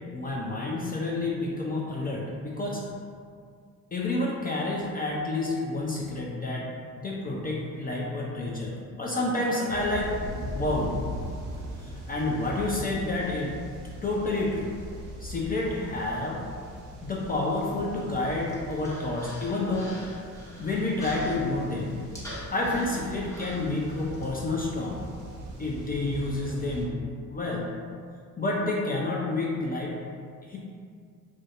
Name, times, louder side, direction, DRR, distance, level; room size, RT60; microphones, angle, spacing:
voice 1, 0.1-2.8 3.9-6.7 6.9-10.1 10.5-10.9 11.8-13.5 14.0-14.7 15.2-16.4 17.0-19.9 20.6-21.9 22.5-25.0 25.6-26.9 27.3-27.7 28.4-29.9 30.4-30.6, left 2 dB, 25° left, -4 dB, 0.4 m, -29 dB
sound 1, 9.7-26.8, right 1 dB, 85° right, 0.6 m, -41 dB
Human voice, 18.0-24.2, equal, 10° left, 1.1 m, -44 dB
2.5 x 2.2 x 2.5 m, 2.1 s
hypercardioid pair, 50°, 39 cm